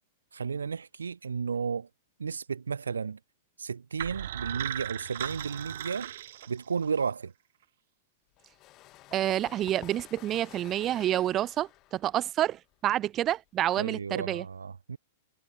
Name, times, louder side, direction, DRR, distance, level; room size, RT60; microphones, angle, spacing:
voice 1, 0.3-1.9 2.2-3.2 3.6-6.1 6.5-7.3 13.8-15.0, right 5 dB, 75° right, 0.5 m, -33 dB
sound 1, 4.0-7.0, right 12 dB, 55° right, 3.1 m, -37 dB
sound 2, 8.3-13.8, left 17 dB, 35° left, 2.2 m, -52 dB
voice 2, 9.1-14.4, right 12 dB, 30° right, 0.7 m, -28 dB
figure-of-eight pair, 100°, 0 cm